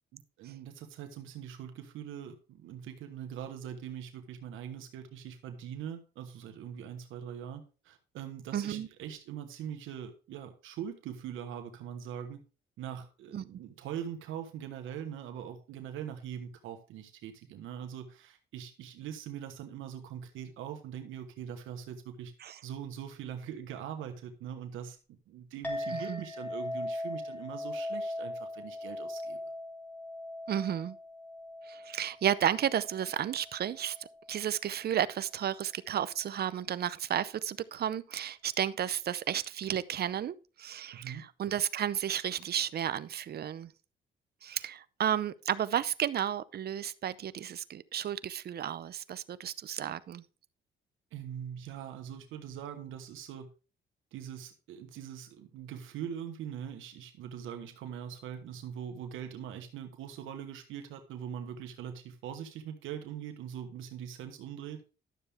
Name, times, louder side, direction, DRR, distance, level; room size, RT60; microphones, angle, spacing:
voice 1, 0.1-12.4 12.8-22.3 22.6-29.4 40.9-41.2 51.1-53.5 54.1-64.8, right 9 dB, 90° right, 1.3 m, -42 dB
voice 2, 8.5-8.9 13.3-13.4 22.4-22.6 25.9-26.2 30.5-31.0 31.7-43.7 44.4-50.2, right 10 dB, 55° right, 0.6 m, -33 dB
Chink clink, 25.6-34.3, left 1 dB, 10° left, 3.1 m, -40 dB
12.0 x 7.0 x 3.5 m
cardioid pair, 90°, 20 cm